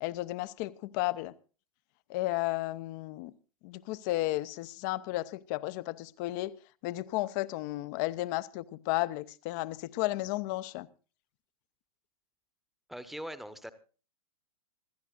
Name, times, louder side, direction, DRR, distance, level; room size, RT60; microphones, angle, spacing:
voice 1, 0.0-1.3 2.1-3.3 3.6-10.9, left 18 dB, 35° left, 0.7 m, -33 dB
voice 2, 12.9-13.7, equal, ahead, 1.0 m, -41 dB
26.5 x 14.0 x 2.5 m
figure-of-eight pair, 110°, 18 cm